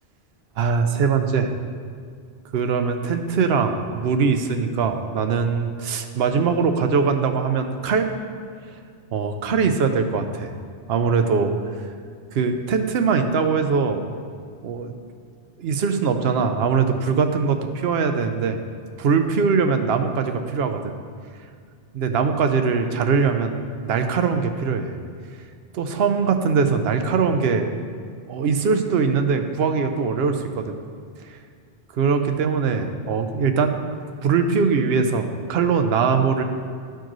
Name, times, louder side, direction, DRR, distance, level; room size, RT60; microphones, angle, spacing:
voice 1, 0.6-1.5 2.5-8.1 9.1-10.5 10.9-11.5 12.3-14.1 14.6-14.9 15.6-18.6 19.0-20.9 21.9-23.6 23.8-25.0 25.7-27.7 28.3-30.7 31.9-33.8 34.2-36.4, right 5 dB, 75° right, 6 dB, 0.8 m, -21 dB
13.0 x 4.5 x 3.0 m, 2.1 s
omnidirectional pair, 1.1 m